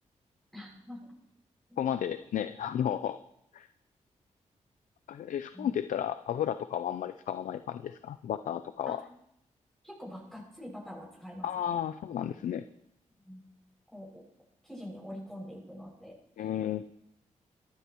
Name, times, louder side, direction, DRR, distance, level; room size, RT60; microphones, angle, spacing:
voice 1, 0.5-1.1 1.7-2.2 5.5-5.7 8.8-8.9 9.8-11.8 13.2-13.4 13.9-14.2 14.6-16.1, equal, 5° left, -3 dB, 6.5 m, -45 dB
voice 2, 1.8-3.2 3.5-3.7 5.1-9.0 11.4-12.6 16.4-16.8, left 9 dB, 85° left, 11 dB, 0.5 m, -33 dB
24.5 x 11.5 x 3.1 m, 0.76 s
cardioid pair, 85°, 13 cm